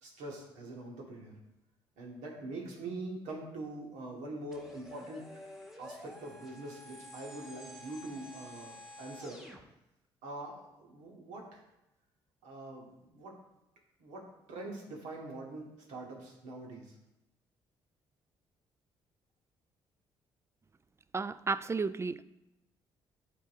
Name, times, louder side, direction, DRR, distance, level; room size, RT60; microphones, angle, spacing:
voice 1, 0.0-1.3 2.0-5.3 5.8-9.4 10.2-11.6 12.4-13.3 14.0-17.0, right 2 dB, 75° right, -1 dB, 1.8 m, -44 dB
sound 1, 4.5-9.6, left 1 dB, 5° right, 1.5 m, -50 dB
voice 2, 21.1-22.2, right 4 dB, 20° right, 16 dB, 0.4 m, -33 dB
11.5 x 4.1 x 2.7 m, 0.91 s
hypercardioid pair, 50°, 13 cm